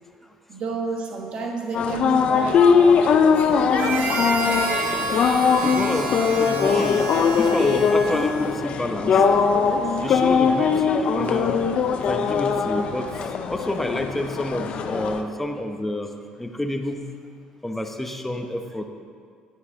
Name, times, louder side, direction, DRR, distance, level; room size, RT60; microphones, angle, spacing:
voice 1, 0.5-3.6 11.3-11.4, right 4 dB, 55° right, 2 dB, 1.5 m, -31 dB
sound 1, 1.7-15.2, left 6 dB, 55° left, 0.7 m, -21 dB
Harmonica, 3.7-8.7, right 3 dB, 80° right, 1.0 m, -29 dB
voice 2, 5.6-7.0 7.3-9.2 10.0-11.5 12.1-13.1 13.5-16.1 16.4-17.0 17.6-18.9, left 1 dB, 10° left, 5 dB, 0.9 m, -28 dB
10.5 x 9.4 x 3.7 m, 2.2 s
supercardioid pair, 85°, 2 cm